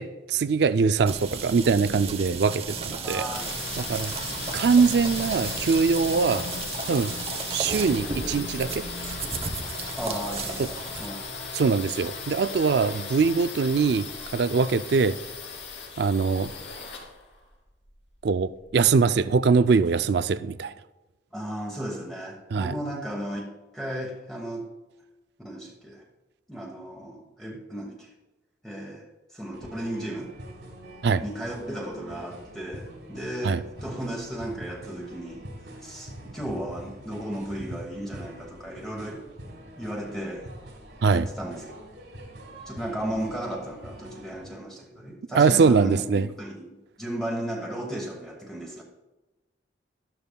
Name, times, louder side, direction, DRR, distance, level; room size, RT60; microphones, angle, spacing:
voice 1, 0.0-3.3 3.8-4.1 4.5-6.5 6.9-7.1 7.5-8.8 10.6-10.7 11.5-14.1 14.3-15.2 16.0-16.5 18.2-20.7 22.5-22.7 31.0-31.2 33.4-33.6 41.0-41.3 45.3-46.3, right 5 dB, 60° right, 0.4 m, -22 dB
sound 1, 1.1-11.1, right 4 dB, 30° right, 0.8 m, -34 dB
voice 2, 2.9-3.5 10.0-11.3 21.3-24.7 25.4-26.0 26.5-28.1 28.6-30.3 31.2-39.2 39.8-40.5 41.1-41.7 42.7-48.8, right 1 dB, ahead, 1.2 m, -35 dB
sound 2, 3.3-19.0, left 4 dB, 85° left, 2.9 m, -37 dB
sound 3, 29.5-44.5, equal, 90° right, 3.5 m, -44 dB
13.0 x 12.0 x 2.3 m
head